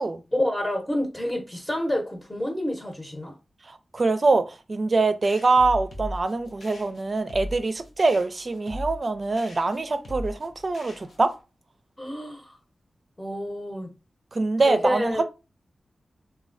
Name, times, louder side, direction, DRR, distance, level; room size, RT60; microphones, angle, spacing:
voice 1, 0.3-3.3 12.0-12.6 13.2-13.9 14.6-15.2, left 1 dB, 20° left, 0.8 m, -28 dB
voice 2, 3.7-11.3 14.3-15.2, right 3 dB, 50° right, 0.4 m, -24 dB
sound 1, 5.2-11.4, equal, 75° left, 0.6 m, -39 dB
3.1 x 2.2 x 2.5 m
cardioid pair, 40°, 0 cm